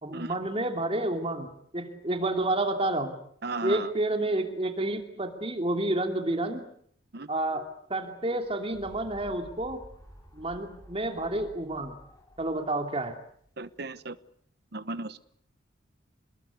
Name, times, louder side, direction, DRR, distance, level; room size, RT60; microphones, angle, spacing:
voice 1, 0.0-1.5 1.7-3.1 3.6-6.6 7.3-9.8 10.3-11.9 12.4-13.1, right 1 dB, 30° right, 5 dB, 2.7 m, -29 dB
voice 2, 3.4-3.9 7.1-7.3 13.6-14.2 14.7-15.3, right 3 dB, 55° right, 13 dB, 1.1 m, -35 dB
sound 1, 8.3-13.8, equal, 20° left, 5.7 m, -52 dB
28.0 x 21.0 x 8.4 m, 0.66 s
head